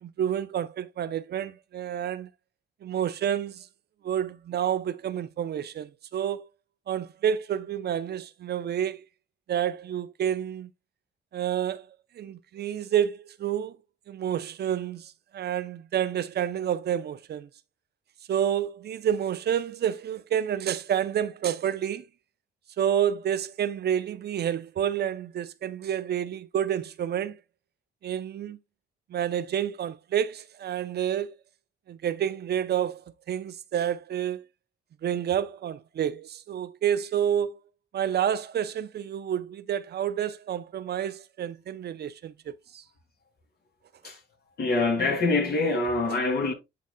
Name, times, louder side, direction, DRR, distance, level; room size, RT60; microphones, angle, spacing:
voice 1, 0.0-2.3 2.8-3.7 4.0-6.5 6.9-9.1 9.5-10.7 11.3-11.9 12.2-13.8 14.1-17.5 18.3-22.1 22.8-27.4 28.0-28.6 29.1-31.3 31.9-34.5 35.0-37.6 37.9-42.8 46.0-46.1, right 9 dB, 55° right, 0.6 m, -29 dB
voice 2, 44.6-46.5, left 3 dB, 55° left, 2.7 m, -25 dB
11.5 x 4.0 x 2.2 m
cardioid pair, 90°, 20 cm